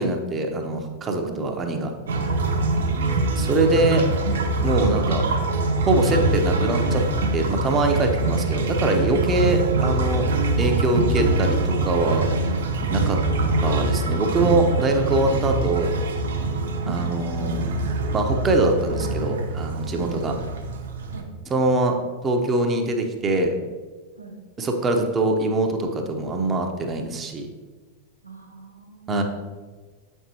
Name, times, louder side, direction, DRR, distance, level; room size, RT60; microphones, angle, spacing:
voice 1, 0.0-1.9 3.4-4.0 4.6-5.2 5.8-7.0 7.3-10.2 10.6-12.3 12.9-13.2 13.6-15.9 16.9-17.6 18.1-20.3 21.5-21.9 22.2-23.5 24.6-27.5 29.1-29.2, right 2 dB, 20° right, 3 dB, 0.8 m, -23 dB
voice 2, 1.2-1.8 2.6-3.0 16.8-17.3 19.9-20.2 21.1-21.3 24.1-24.4 28.2-29.2, right 4 dB, 85° right, 1 dB, 1.0 m, -40 dB
sound 1, 2.1-21.2, right 2 dB, 65° right, 0.6 m, -24 dB
7.4 x 5.5 x 2.9 m, 1.3 s
figure-of-eight pair, 90°, 0 cm